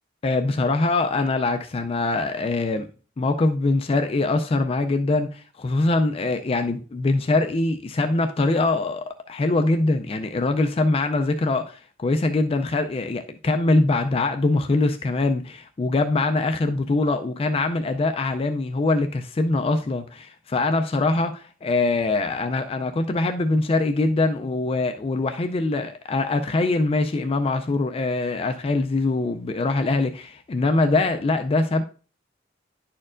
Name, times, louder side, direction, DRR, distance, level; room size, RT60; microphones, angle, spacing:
voice 1, 0.2-2.9 3.2-31.8, left 2 dB, 30° left, 0.3 m, -23 dB
11.0 x 4.4 x 2.5 m
head